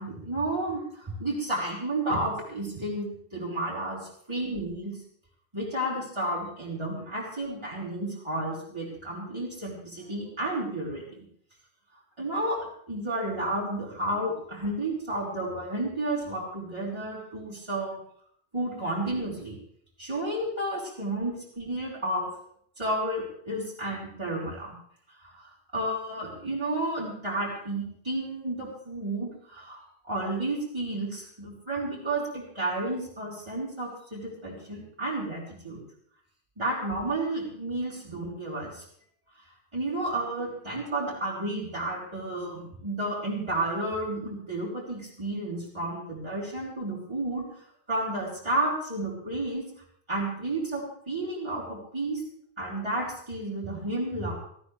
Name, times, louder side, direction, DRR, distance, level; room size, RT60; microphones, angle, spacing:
voice 1, 0.0-4.9 5.5-11.0 12.2-17.9 18.5-19.6 20.0-22.3 22.8-24.7 25.2-35.8 36.6-38.8 39.7-47.5 47.9-49.6 50.1-52.2 52.6-54.4, right 1 dB, 25° right, -6 dB, 4.2 m, -31 dB
18.0 x 14.5 x 3.4 m, 0.65 s
omnidirectional pair, 1.1 m